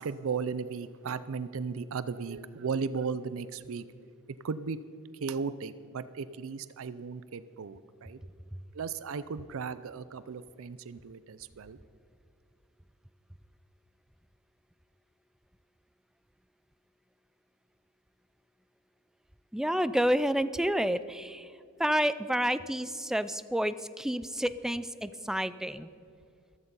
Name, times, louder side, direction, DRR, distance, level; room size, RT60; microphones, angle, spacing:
voice 1, 0.0-3.8 4.4-4.8 5.1-8.2 8.7-11.8, right 5 dB, 65° right, 14 dB, 0.5 m, -36 dB
voice 2, 19.5-21.5 21.8-25.9, equal, ahead, 14 dB, 0.4 m, -29 dB
15.0 x 13.5 x 5.5 m, 2.5 s
head